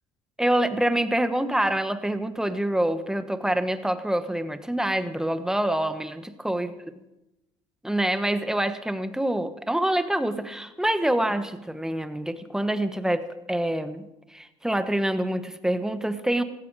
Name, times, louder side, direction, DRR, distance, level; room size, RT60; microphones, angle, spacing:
voice 1, 0.4-6.7 7.8-14.1 14.3-16.4, right 1 dB, 5° right, 11 dB, 1.2 m, -26 dB
16.5 x 14.5 x 5.0 m, 0.95 s
supercardioid pair, 90°, 13 cm